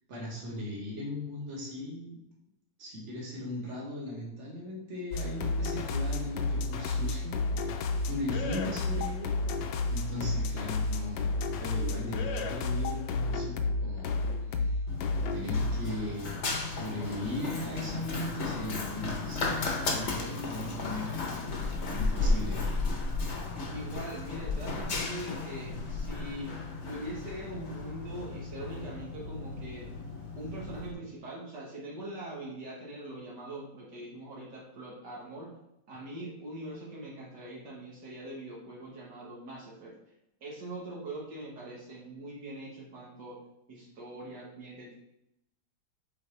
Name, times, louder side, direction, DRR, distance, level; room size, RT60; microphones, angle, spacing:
voice 1, 0.1-2.2 2.8-9.3 9.9-11.3 11.6-14.2 14.5-14.8 15.3-19.5 19.9-21.5 22.0-23.0, left 1 dB, 40° right, -4 dB, 1.9 m, -38 dB
sound 1, 5.1-16.0, left 3 dB, 85° left, 1.4 m, -31 dB
Run, 14.9-30.9, left 3 dB, 45° left, 1.0 m, -34 dB
voice 2, 22.2-22.7 23.7-26.5 26.8-29.9 30.4-35.5 35.9-39.9 40.4-43.4 43.7-44.9, right 1 dB, 65° right, -5 dB, 1.9 m, -42 dB
8.2 x 4.1 x 3.3 m, 0.87 s
omnidirectional pair, 2.0 m